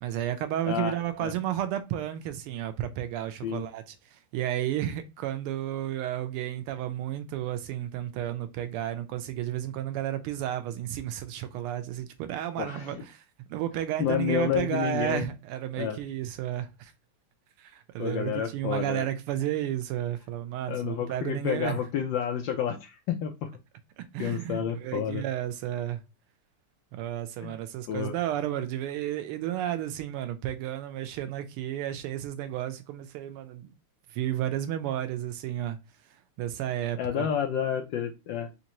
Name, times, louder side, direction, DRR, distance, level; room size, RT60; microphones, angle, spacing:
voice 1, 0.0-13.2 13.5-16.9 17.6-21.8 24.0-26.0 26.9-33.7 34.1-35.8 36.4-37.3, right 12 dB, 90° right, 1.5 m, -32 dB
voice 2, 12.6-13.0 14.0-15.3 15.8-16.0 18.0-19.0 20.7-23.5 24.2-25.2 27.4-27.6 27.9-28.1 37.0-38.5, left 9 dB, 75° left, 1.1 m, -30 dB
4.3 x 2.6 x 2.9 m
omnidirectional pair, 2.4 m